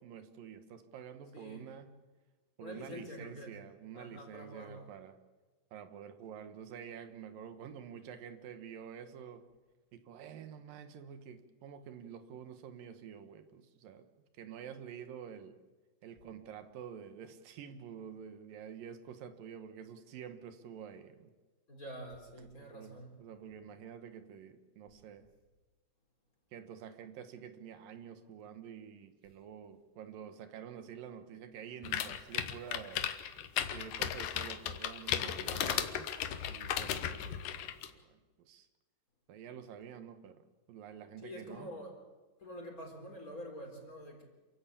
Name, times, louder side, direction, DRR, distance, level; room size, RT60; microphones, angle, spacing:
voice 1, 0.0-1.9 2.6-5.1 5.7-9.4 9.9-14.1 14.4-15.6 16.0-21.3 22.4-25.3 26.5-33.1 33.7-36.1 36.5-38.7 39.3-40.4 40.7-41.7, right 8 dB, 85° right, 3.0 m, -48 dB
voice 2, 1.3-1.6 2.6-3.5 3.9-4.9 21.7-23.2 41.2-41.9 42.4-44.2, equal, 25° left, 3.9 m, -47 dB
sound 1, 31.8-37.9, left 10 dB, 75° left, 2.7 m, -35 dB
28.0 x 15.0 x 8.6 m
omnidirectional pair, 3.9 m